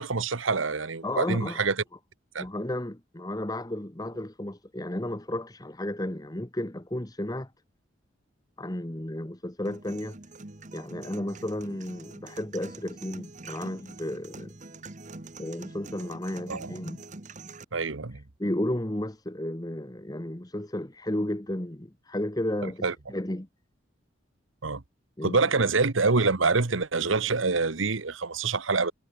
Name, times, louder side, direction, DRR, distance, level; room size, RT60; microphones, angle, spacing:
voice 1, 0.0-1.8 2.3-2.5 16.5-16.7 17.7-18.2 22.6-22.9 24.6-24.8 25.2-28.9, right 4 dB, 80° right, 1.3 m, -26 dB
voice 2, 1.0-1.6 2.4-7.5 8.6-10.2 10.7-14.5 15.4-17.0 18.4-23.5 25.2-25.4, left 1 dB, 20° left, 1.2 m, -33 dB
sound 1, 9.7-17.6, right 3 dB, 40° right, 1.3 m, -45 dB
head